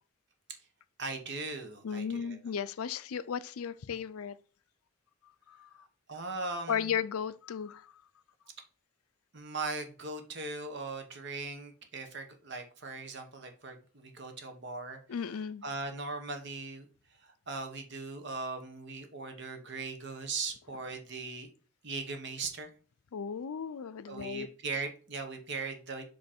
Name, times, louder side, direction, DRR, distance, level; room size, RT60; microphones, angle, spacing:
voice 1, 1.0-2.4 6.1-6.9 9.3-15.0 15.6-16.9 17.2-21.5 21.8-22.7 24.1-26.0, right 3 dB, 50° right, 1.2 m, -39 dB
voice 2, 1.8-4.4 5.5-5.9 6.7-8.0 15.1-15.6 23.1-24.5, left 7 dB, 80° left, 0.4 m, -35 dB
7.5 x 3.1 x 4.3 m
head